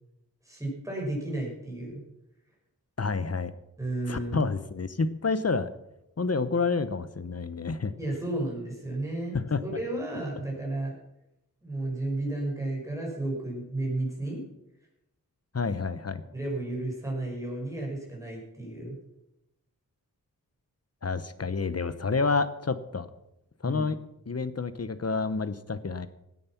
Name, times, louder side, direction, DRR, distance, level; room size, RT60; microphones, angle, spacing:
voice 1, 0.4-2.0 3.8-4.5 8.0-10.9 11.6-14.4 16.3-19.0 23.6-23.9, right 2 dB, 10° right, -2 dB, 5.7 m, -33 dB
voice 2, 3.0-3.5 4.1-5.7 6.2-7.9 9.3-9.6 15.5-16.2 21.0-23.1 23.6-24.0 24.3-26.1, left 4 dB, 45° left, 13 dB, 1.0 m, -29 dB
17.0 x 9.5 x 6.0 m, 0.87 s
wide cardioid pair, 85°, 36 cm